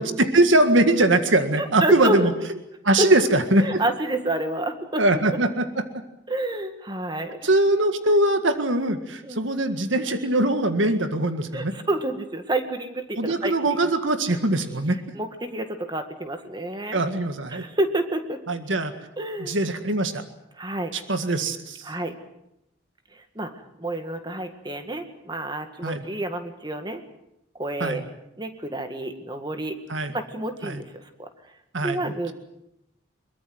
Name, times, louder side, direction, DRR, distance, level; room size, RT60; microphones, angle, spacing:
voice 1, 0.0-2.3 2.8-3.8 5.0-5.8 7.4-11.7 13.2-15.0 16.9-17.6 18.5-18.9 19.4-20.2 20.9-21.9 25.8-26.0 27.8-28.0 29.9-30.1 30.6-30.8 31.7-32.3, right 2 dB, 80° right, 8 dB, 1.9 m, -22 dB
voice 2, 1.6-2.3 3.0-3.1 3.6-5.2 6.3-7.4 9.2-9.5 11.5-13.5 14.3-14.4 15.1-17.0 17.5-18.4 19.2-19.5 20.6-20.9 21.8-22.1 23.1-23.5 23.8-27.0 27.6-28.0 28.4-29.8 30.1-31.3 31.8-32.3, right 1 dB, 20° right, 7 dB, 1.9 m, -29 dB
23.0 x 22.0 x 7.9 m, 0.83 s
head